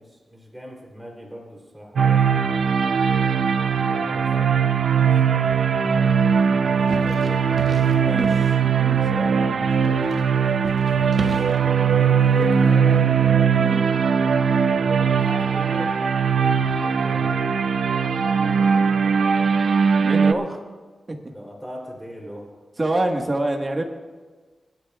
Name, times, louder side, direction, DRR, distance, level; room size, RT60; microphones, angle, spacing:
voice 1, 0.0-2.3 3.4-7.8 10.9-11.5 11.9-13.2 14.7-16.0 16.6-17.4 21.3-22.6, equal, 5° right, -2 dB, 3.2 m, -40 dB
sound 1, 2.0-20.3, right 6 dB, 80° right, 0.5 m, -20 dB
sound 2, 6.7-12.5, right 4 dB, 65° right, 1.2 m, -38 dB
voice 2, 8.0-10.0 13.6-13.8 20.0-20.6 21.1-21.2 22.8-23.8, right 2 dB, 30° right, 3 dB, 1.5 m, -27 dB
26.5 x 10.5 x 2.4 m, 1.3 s
wide cardioid pair, 95°, 0 cm